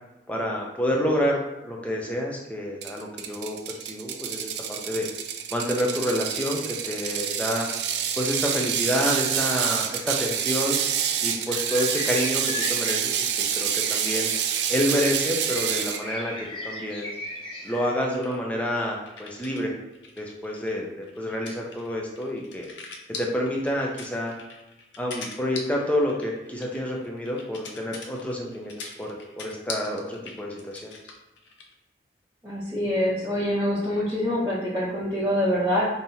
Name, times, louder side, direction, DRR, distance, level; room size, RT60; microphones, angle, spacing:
voice 1, 0.3-5.1 5.5-7.7 8.2-10.8 11.2-13.2 13.6-14.3 14.7-17.2 17.6-19.7 20.2-22.7 23.1-24.3 25.0-31.0, equal, 10° left, -1 dB, 0.6 m, -28 dB
Ratchet pawl, 2.8-16.0, right 9 dB, 75° right, 0.4 m, -27 dB
sound 1, 6.8-17.9, left 2 dB, 25° left, 1.0 m, -40 dB
sound 2, 17.7-19.6 19.9-31.7, left 4 dB, 85° left, 0.7 m, -42 dB
voice 2, 32.4-35.9, equal, 15° right, -9 dB, 0.8 m, -25 dB
5.3 x 2.9 x 2.8 m, 0.99 s
head